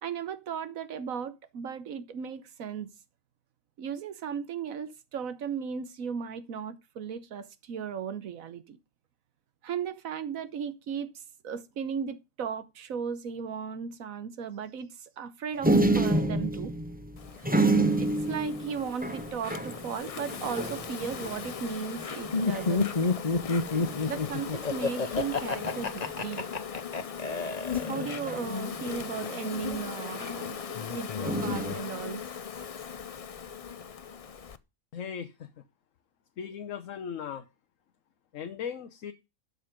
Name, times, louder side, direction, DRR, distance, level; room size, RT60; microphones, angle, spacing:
voice 1, 0.0-2.9 3.8-8.8 9.6-16.7 18.0-22.9 24.1-26.4 27.8-32.2, right 7 dB, 80° right, 1.4 m, -36 dB
sound 1, 15.6-21.6 22.0-22.1 22.3-22.8 23.7-24.2 25.6-26.1 27.7-29.0 31.2-31.7, right 2 dB, 10° right, 0.8 m, -29 dB
Insect, 17.2-34.6, left 7 dB, 55° left, 0.4 m, -38 dB
Laughter, 22.3-28.3, left 3 dB, 30° left, 1.2 m, -28 dB
voice 2, 34.9-35.5 36.4-37.5 38.3-39.1, left 7 dB, 70° left, 1.2 m, -37 dB
12.0 x 6.7 x 5.1 m
omnidirectional pair, 1.4 m